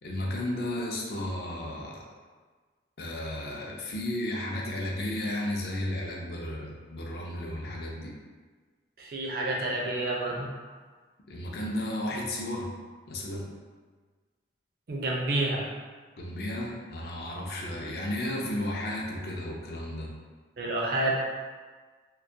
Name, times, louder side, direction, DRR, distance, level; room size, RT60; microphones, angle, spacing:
voice 1, 0.0-2.0 3.0-8.2 11.3-12.7 13.1-13.5 16.2-20.2, left 1 dB, 60° left, -2 dB, 0.4 m, -33 dB
voice 2, 9.0-10.5 14.9-15.7 20.6-21.1, right 2 dB, 55° right, -2 dB, 0.4 m, -29 dB
2.2 x 2.1 x 2.6 m, 1.4 s
head